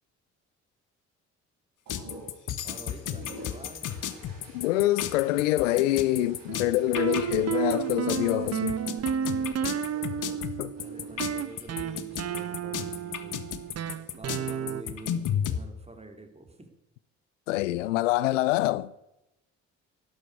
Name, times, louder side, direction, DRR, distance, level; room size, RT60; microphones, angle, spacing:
sound 1, 1.9-15.6, left 9 dB, 55° left, 1.5 m, -33 dB
sound 2, 1.9-12.5 13.7-14.3, right 1 dB, 60° right, 6.2 m, -50 dB
voice 1, 2.6-3.9 10.8-13.5 14.1-16.7, right 2 dB, 15° right, 3.7 m, -47 dB
voice 2, 4.5-8.8 10.6-10.7 17.5-18.9, left 16 dB, 90° left, 0.5 m, -25 dB
sound 3, 6.5-14.8, right 8 dB, 45° right, 1.0 m, -32 dB
12.0 x 12.0 x 8.2 m
hypercardioid pair, 50°, 36 cm